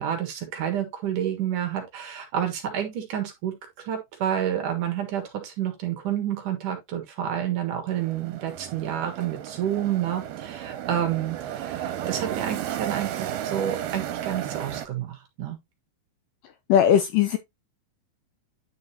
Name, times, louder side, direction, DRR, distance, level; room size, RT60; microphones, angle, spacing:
voice 1, 0.0-15.6, right 10 dB, 60° right, 2.8 m, -29 dB
sound 1, 7.9-14.9, right 11 dB, 80° right, 2.9 m, -33 dB
voice 2, 16.7-17.4, left 9 dB, 80° left, 2.0 m, -18 dB
10.0 x 5.1 x 2.8 m
omnidirectional pair, 4.6 m